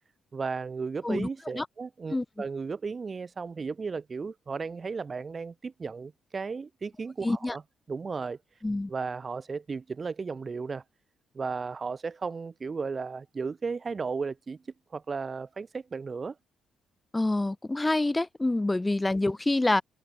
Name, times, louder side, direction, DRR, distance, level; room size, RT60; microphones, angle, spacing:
voice 1, 0.3-7.6 7.9-8.4 8.9-10.8 11.3-14.6 14.9-16.4, right 4 dB, 35° right, 5.1 m, -35 dB
voice 2, 7.2-7.6 8.6-8.9 17.1-19.8, left 2 dB, 15° left, 2.1 m, -26 dB
cardioid pair, 90°, 0 cm